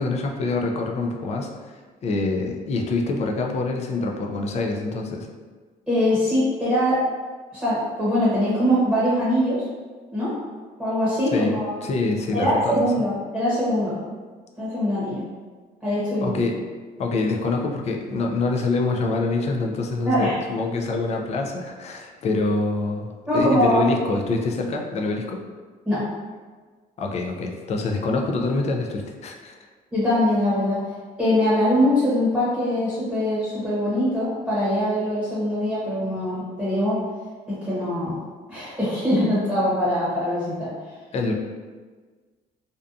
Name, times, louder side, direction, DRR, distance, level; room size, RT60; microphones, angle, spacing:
voice 1, 0.0-5.3 11.3-12.9 16.2-16.6 17.0-25.4 27.0-29.6 41.1-41.3, left 3 dB, 40° left, 2 dB, 0.4 m, -25 dB
voice 2, 5.9-7.0 7.5-9.7 10.1-10.3 10.8-11.7 12.3-14.0 14.6-15.2 15.8-16.3 20.1-20.4 23.3-23.9 25.8-26.0 29.9-30.9 31.2-37.0 37.5-38.2 38.5-40.7, equal, 5° right, -11 dB, 0.9 m, -22 dB
2.6 x 2.3 x 2.4 m, 1.4 s
cardioid pair, 110°, 17 cm